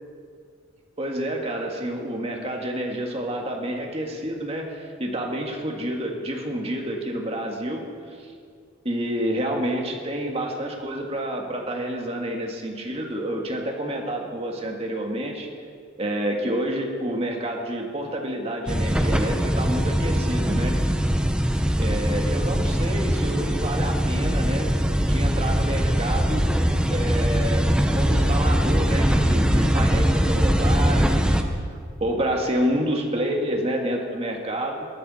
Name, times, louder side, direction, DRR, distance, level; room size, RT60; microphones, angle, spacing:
voice 1, 1.0-8.3 8.8-15.5 16.0-20.8 21.8-24.7 25.0-26.5 26.9-34.9, right 1 dB, 30° right, 1 dB, 1.9 m, -29 dB
sound 1, 18.7-31.4, equal, 5° right, 0.7 m, -21 dB
18.5 x 13.0 x 4.3 m, 2.1 s
head